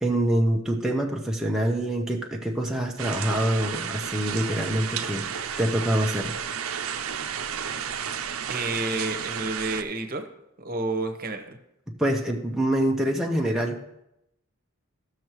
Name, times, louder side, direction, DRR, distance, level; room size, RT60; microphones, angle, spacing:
voice 1, 0.0-6.4 12.0-13.8, right 1 dB, ahead, -1 dB, 0.6 m, -25 dB
sound 1, 3.0-9.8, right 8 dB, 85° right, 0.6 m, -32 dB
voice 2, 8.5-10.2 10.6-11.6, right 2 dB, 45° right, 7 dB, 1.0 m, -30 dB
15.0 x 6.5 x 3.1 m, 0.86 s
head